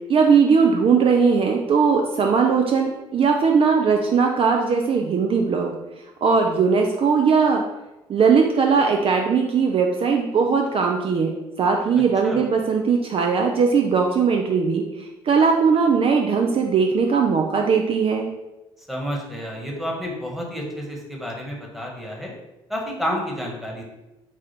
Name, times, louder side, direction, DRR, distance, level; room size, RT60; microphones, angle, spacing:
voice 1, 0.1-5.7 6.2-7.6 8.1-11.3 11.6-18.3, right 5 dB, 40° right, 2 dB, 0.5 m, -19 dB
voice 2, 18.8-22.3 22.7-23.8, equal, ahead, -1 dB, 1.5 m, -30 dB
4.8 x 2.6 x 4.3 m, 0.99 s
hypercardioid pair, 50°, 14 cm